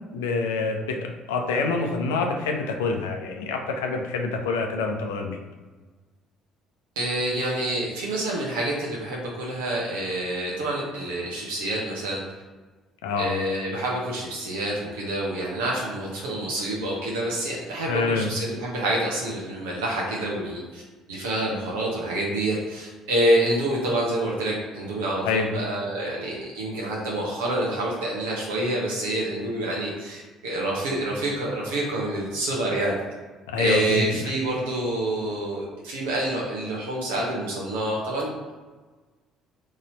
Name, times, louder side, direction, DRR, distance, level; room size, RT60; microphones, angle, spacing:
voice 1, 0.1-5.4 13.0-13.3 17.9-18.3 25.2-25.5 33.5-34.3, left 4 dB, 70° left, 3 dB, 0.5 m, -26 dB
voice 2, 7.0-12.2 13.2-20.8 21.1-33.0 33.6-38.5, right 1 dB, 70° right, -3 dB, 0.8 m, -27 dB
4.1 x 3.1 x 3.9 m, 1.3 s
figure-of-eight pair, 50°, 0 cm